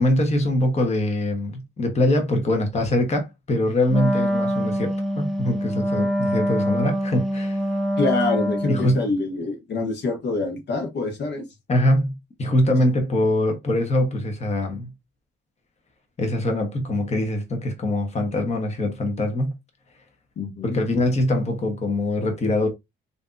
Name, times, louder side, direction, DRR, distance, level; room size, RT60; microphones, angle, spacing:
voice 1, 0.0-7.6 8.7-9.0 11.7-12.1 12.4-14.9 16.2-19.5 20.6-22.7, left 1 dB, 35° left, 1.0 m, -23 dB
Wind instrument woodwind instrument, 3.9-9.0, equal, ahead, 0.6 m, -24 dB
voice 2, 8.0-11.4 20.4-20.8, left 3 dB, 60° left, 1.0 m, -26 dB
3.3 x 2.6 x 2.5 m
cardioid pair, 90°, 20 cm